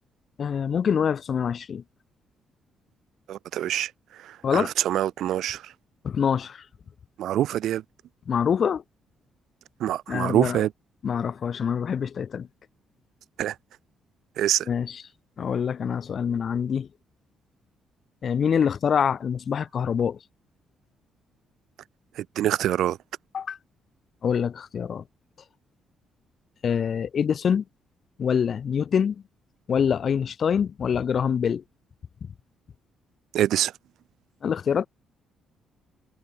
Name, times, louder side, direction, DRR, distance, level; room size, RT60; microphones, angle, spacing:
voice 1, 0.4-1.8 4.4-4.7 6.0-6.6 8.3-8.8 10.1-10.6 11.0-12.5 14.7-15.0 15.4-16.9 18.2-20.2 23.3-23.6 24.2-25.0 26.6-27.6 28.2-29.2 29.7-31.6 32.2-32.3 34.4-34.9, left 7 dB, 50° left, 0.9 m, -25 dB
voice 2, 3.3-3.9 4.2-5.7 7.2-7.8 9.8-10.7 13.4-13.5 14.4-14.7 22.2-23.0 33.3-33.7, right 12 dB, 75° right, 1.3 m, -25 dB
cardioid pair, 90°, 0 cm